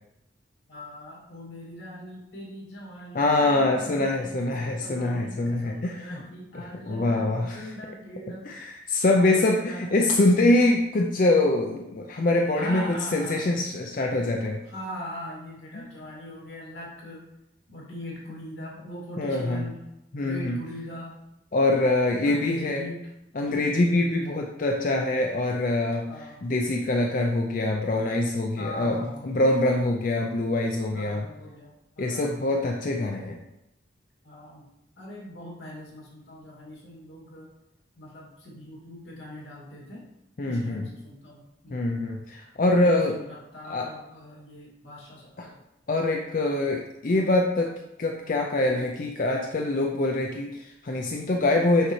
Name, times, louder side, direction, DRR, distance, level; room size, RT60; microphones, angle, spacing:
voice 1, 0.7-8.8 9.3-10.0 12.5-13.6 14.6-17.3 17.7-19.8 20.1-21.1 22.2-23.1 26.1-26.5 28.5-29.3 30.9-32.5 34.2-34.7 35.0-37.5 38.0-40.0 40.4-42.0 42.8-45.6, equal, 80° left, -4 dB, 2.3 m, -41 dB
voice 2, 3.1-6.2 6.5-7.7 8.4-14.6 15.7-15.8 19.2-19.7 20.1-20.6 21.5-22.8 23.4-26.1 26.4-31.3 32.0-33.4 40.4-40.8 41.7-43.2 43.7-43.9 45.4-45.5 45.9-47.7 48.0-51.9, left 2 dB, 45° left, 1 dB, 0.4 m, -24 dB
6.4 x 5.4 x 3.2 m, 0.89 s
head